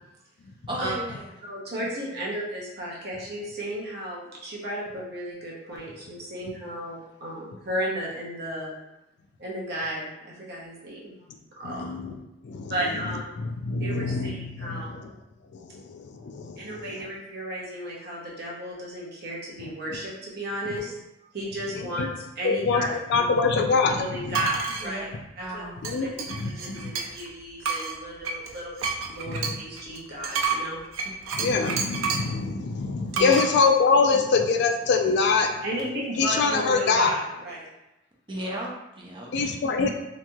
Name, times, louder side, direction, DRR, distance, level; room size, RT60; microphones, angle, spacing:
voice 1, 0.7-1.3 1.8-1.9 24.7-25.0 25.4-25.7 33.1-33.4 34.1-34.2 38.3-39.5, right 1 dB, 25° right, -3 dB, 0.5 m, -35 dB
voice 2, 1.5-8.8 9.4-11.2 11.6-12.0 12.7-13.3 13.8-15.0 16.6-20.9 21.3-22.9 23.2-23.3 24.0-25.1 25.4-25.6 26.0-26.1 26.6-28.7 29.1-30.8 35.6-37.7, equal, 55° right, -4 dB, 0.8 m, -34 dB
voice 3, 11.6-12.1 12.4-12.7 13.4-15.1 15.5-17.0 22.0-22.1 22.4-24.4 25.8-26.9 29.3-29.5 31.3-35.5 36.2-37.1 39.3-39.9, left 4 dB, 55° left, 3 dB, 0.3 m, -24 dB
sound 1, 24.3-24.9 25.8-27.3 27.6-32.4 33.1-33.5, right 5 dB, 85° right, 0.4 m, -30 dB
2.9 x 2.7 x 2.3 m, 0.90 s
head